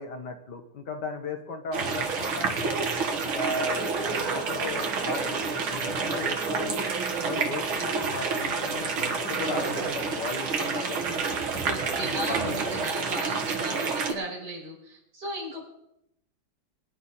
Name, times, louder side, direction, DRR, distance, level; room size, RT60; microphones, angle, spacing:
voice 1, 0.0-2.9 3.2-6.9 7.2-11.2 12.0-12.8, left 3 dB, 60° left, 5 dB, 1.9 m, -36 dB
sound 1, 1.7-14.1, right 4 dB, 85° right, 2.5 m, -29 dB
voice 2, 11.5-15.7, right 1 dB, 50° right, -6 dB, 6.7 m, -36 dB
23.5 x 10.5 x 4.2 m, 0.79 s
omnidirectional pair, 2.2 m